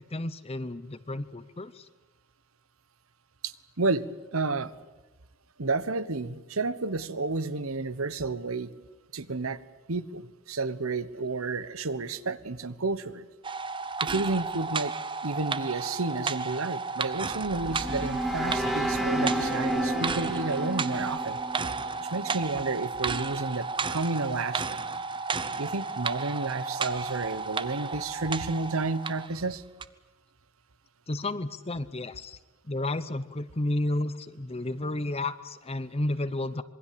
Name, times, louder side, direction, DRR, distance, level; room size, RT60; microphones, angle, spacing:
voice 1, 0.0-1.9 31.1-32.4 32.7-36.6, left 2 dB, 30° left, 13 dB, 0.8 m, -32 dB
voice 2, 3.4-4.7 5.6-8.7 9.1-9.6 9.9-13.2 14.0-15.0 15.2-21.7 22.0-24.8 25.6-29.6, right 3 dB, 80° right, 15 dB, 1.2 m, -31 dB
sound 1, 13.4-29.3 29.8-29.9, right 4 dB, 25° right, 0.8 m, -33 dB
sound 2, 17.2-22.4, right 1 dB, ahead, 1.9 m, -31 dB
sound 3, 18.0-20.6, left 1 dB, 75° left, 2.6 m, -40 dB
26.5 x 22.0 x 8.6 m, 1.1 s
head